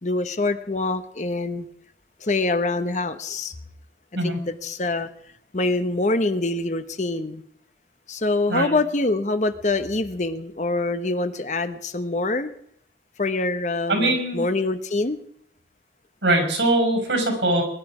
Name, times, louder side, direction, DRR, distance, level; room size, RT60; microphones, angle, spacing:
voice 1, 0.0-1.7 2.2-3.5 4.2-5.1 5.5-7.4 8.1-12.5 13.2-15.2 17.5-17.6, left 2 dB, 40° left, 10 dB, 1.0 m, -25 dB
voice 2, 13.9-14.4 16.2-17.6, right 1 dB, 85° right, 3 dB, 5.7 m, -21 dB
23.0 x 11.0 x 4.9 m, 0.67 s
head